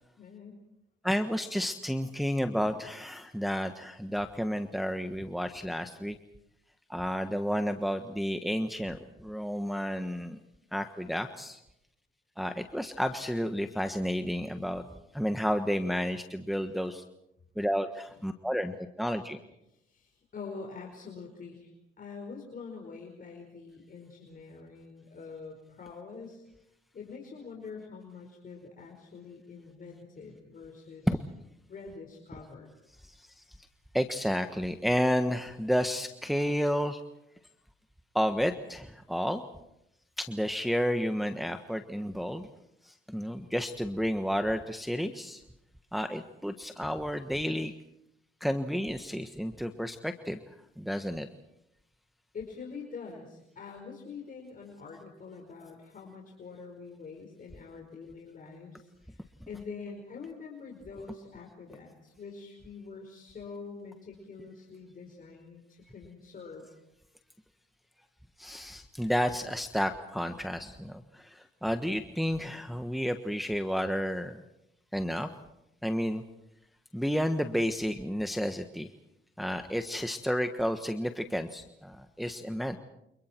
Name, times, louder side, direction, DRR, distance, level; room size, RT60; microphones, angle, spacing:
voice 1, 0.2-0.6 19.9-21.7 22.0-26.4 26.9-31.1 31.7-32.7 52.3-59.2 59.5-66.7, left 5 dB, 45° left, 1 dB, 5.0 m, -45 dB
voice 2, 1.0-6.2 6.9-10.4 10.7-11.6 12.4-14.8 15.1-17.0 17.6-19.4 31.1-31.2 33.0-33.4 33.9-37.0 38.1-39.4 40.2-42.5 42.8-45.4 45.9-47.7 48.4-50.4 50.8-51.3 68.4-74.4 74.9-75.3 75.8-76.2 76.9-78.9 79.4-82.8, equal, ahead, 6 dB, 1.3 m, -31 dB
29.5 x 27.0 x 4.6 m, 0.83 s
cardioid pair, 90°, 20 cm